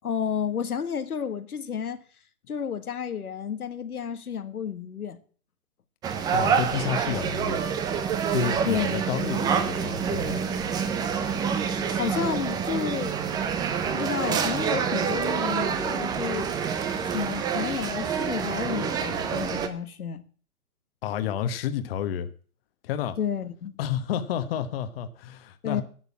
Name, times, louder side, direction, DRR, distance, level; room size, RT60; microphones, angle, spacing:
voice 1, 0.0-2.0 2.5-5.2 8.6-8.9 11.7-13.1 13.8-16.5 17.0-20.2 23.2-23.7 25.6-25.8, left 7 dB, 90° left, 1.7 m, -31 dB
sound 1, 6.0-19.7, right 7 dB, 10° right, 0.6 m, -27 dB
voice 2, 6.3-7.6 8.3-10.4 21.0-22.3 22.8-23.2 23.8-25.8, left 9 dB, 40° left, 1.3 m, -30 dB
11.5 x 6.8 x 8.3 m
hypercardioid pair, 140°, 43 cm